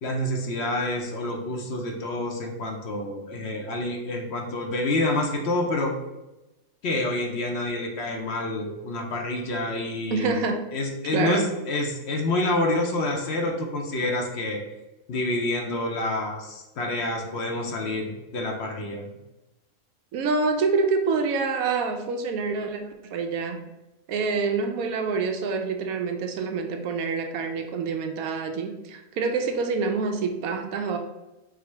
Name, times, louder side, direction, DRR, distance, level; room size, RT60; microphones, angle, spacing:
voice 1, 0.0-5.9 6.8-10.4 10.7-14.6 15.1-19.1, left 2 dB, 60° left, 1 dB, 0.7 m, -28 dB
voice 2, 10.1-10.7 11.1-11.6 20.1-23.7 24.1-31.0, right 4 dB, 75° right, 5 dB, 1.0 m, -26 dB
4.7 x 2.0 x 4.4 m, 1.0 s
omnidirectional pair, 1.6 m